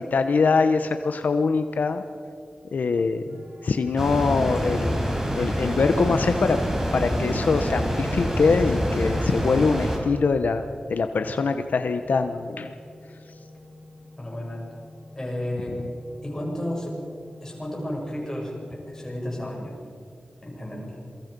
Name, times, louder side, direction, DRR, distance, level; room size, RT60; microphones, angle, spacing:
voice 1, 0.0-2.0 2.7-5.1 5.3-6.6 6.9-10.6 10.9-12.7, left 4 dB, 80° left, 8 dB, 1.0 m, -23 dB
sound 1, 3.3-19.3, left 2 dB, 90° right, 3.5 m, -49 dB
sound 2, 4.0-10.0, equal, 15° right, 5.0 m, -26 dB
voice 2, 14.2-14.7 15.2-15.8 16.2-17.0 17.4-19.8 20.4-21.0, left 1 dB, 20° left, -3 dB, 7.7 m, -32 dB
27.5 x 23.5 x 5.4 m, 2.4 s
wide cardioid pair, 125°, 3 cm